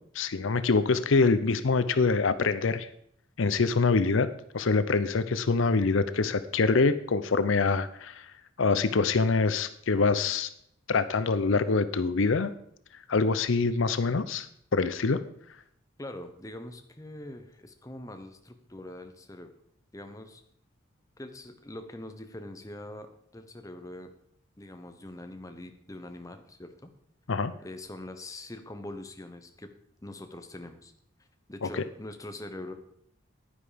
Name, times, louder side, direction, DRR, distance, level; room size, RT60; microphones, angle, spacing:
voice 1, 0.1-2.9 3.4-4.3 4.5-8.3 8.6-10.5 10.9-12.5 13.1-14.5 14.7-15.2 27.3-27.5 31.6-31.8, left 4 dB, 75° left, 13 dB, 0.6 m, -25 dB
voice 2, 16.0-19.5 19.9-20.4 21.2-23.1 23.3-24.1 24.6-26.9 27.6-29.7 30.0-30.9 31.2-32.7, left 1 dB, 15° left, 6 dB, 1.0 m, -43 dB
10.0 x 9.8 x 5.1 m, 0.69 s
head